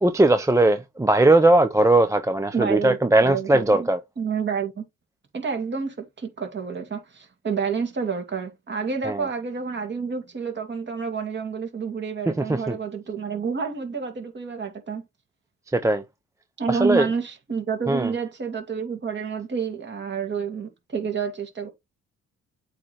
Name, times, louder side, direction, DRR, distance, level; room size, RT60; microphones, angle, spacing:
voice 1, 0.0-4.0 9.0-9.2 12.4-12.8 15.7-16.0 16.7-17.1 17.9-18.1, right 2 dB, 10° right, 0.5 m, -19 dB
voice 2, 2.5-3.9 4.2-4.8 5.3-15.0 16.6-21.7, right 6 dB, 35° right, 2.4 m, -29 dB
8.2 x 3.2 x 4.2 m
cardioid pair, 90°, 30 cm